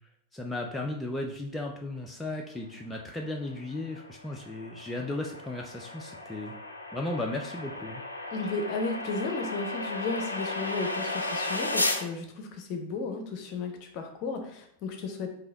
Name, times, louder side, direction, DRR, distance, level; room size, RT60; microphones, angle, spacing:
voice 1, 0.3-6.6 6.9-8.0, left 2 dB, 5° left, 0 dB, 0.4 m, -35 dB
sound 1, 3.4-12.0, left 2 dB, 80° left, 0.4 m, -35 dB
voice 2, 8.3-15.3, left 3 dB, 45° left, 4 dB, 0.7 m, -34 dB
3.9 x 2.7 x 3.8 m, 0.75 s
figure-of-eight pair, 90°, 0 cm